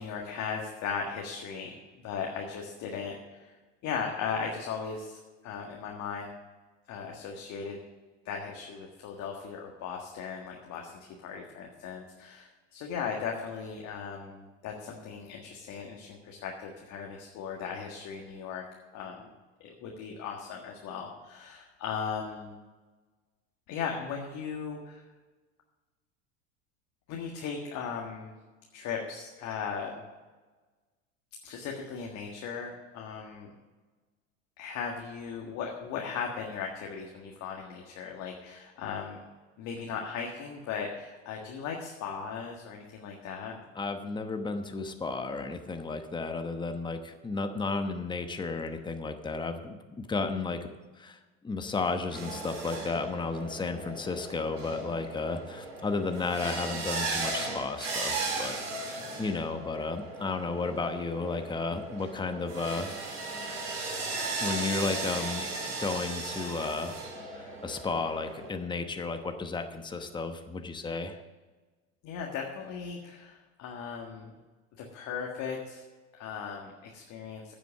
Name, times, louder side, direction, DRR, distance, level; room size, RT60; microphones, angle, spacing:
voice 1, 0.0-1.7 2.0-3.5 3.8-6.3 6.9-7.8 8.3-18.6 18.9-19.3 19.6-22.5 23.7-25.0 27.1-28.3 28.7-30.0 31.4-33.5 34.6-39.2 39.6-43.6 72.0-74.3 74.8-75.8 76.1-77.5, left 6 dB, 50° left, 0 dB, 1.7 m, -37 dB
voice 2, 43.8-50.7 51.0-51.2 51.4-58.5 58.8-62.9 63.4-63.7 64.4-65.5 65.8-66.9 67.4-71.2, left 3 dB, 10° left, 7 dB, 1.0 m, -33 dB
sound 1, 51.8-68.5, right 3 dB, 75° right, 4.3 m, -37 dB
9.4 x 7.9 x 7.0 m, 1.3 s
hypercardioid pair, 95°, 38 cm